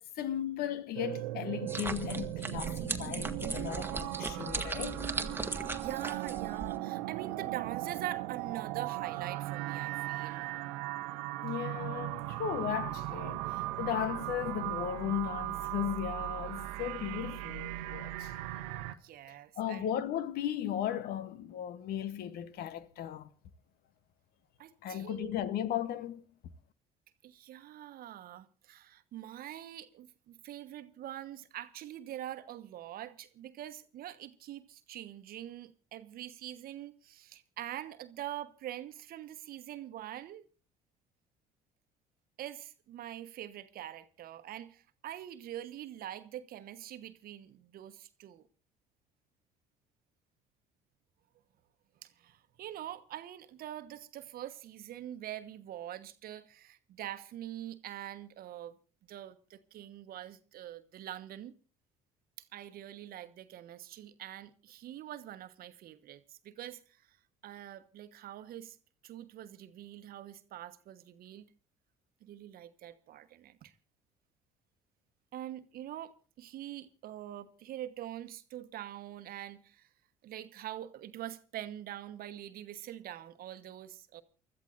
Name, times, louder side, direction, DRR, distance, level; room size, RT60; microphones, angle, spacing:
voice 1, 0.2-5.0 11.4-18.3 19.6-23.3 24.8-26.2, left 10 dB, 60° left, 1.1 m, -36 dB
sound 1, 1.0-19.0, right 17 dB, 75° right, 0.8 m, -38 dB
sound 2, 1.7-6.7, right 2 dB, 10° right, 1.5 m, -38 dB
voice 2, 4.1-4.6 5.5-10.5 19.0-19.9 24.6-25.3 27.2-40.5 42.4-48.5 52.0-58.8 59.1-61.5 62.4-67.2 67.4-68.8 69.0-71.5 72.2-73.7 75.3-79.9 80.2-84.2, right 12 dB, 55° right, 1.2 m, -44 dB
29.5 x 13.5 x 2.6 m
hypercardioid pair, 60°, 18 cm